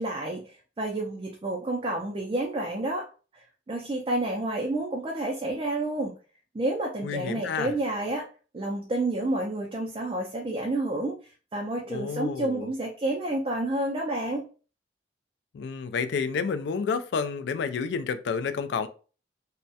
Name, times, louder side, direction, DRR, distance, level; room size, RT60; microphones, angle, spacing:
voice 1, 0.0-3.1 3.7-6.1 6.5-8.2 8.5-11.2 11.5-14.5, right 2 dB, 30° right, 0.3 m, -29 dB
voice 2, 7.0-7.7 11.9-12.7 15.5-18.9, left 5 dB, 80° left, 0.3 m, -30 dB
2.2 x 2.1 x 2.6 m
head